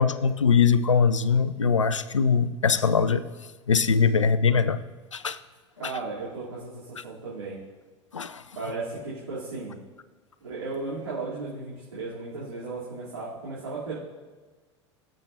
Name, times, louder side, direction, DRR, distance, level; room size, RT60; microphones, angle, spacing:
voice 1, 0.0-3.2 3.7-4.8 5.1-5.4 8.1-8.4, left 5 dB, 85° left, 14 dB, 0.5 m, -22 dB
voice 2, 5.8-7.6 8.5-9.8 10.4-13.9, right 3 dB, 80° right, -9 dB, 3.2 m, -35 dB
19.5 x 7.6 x 2.7 m, 1.4 s
figure-of-eight pair, 80°, 15 cm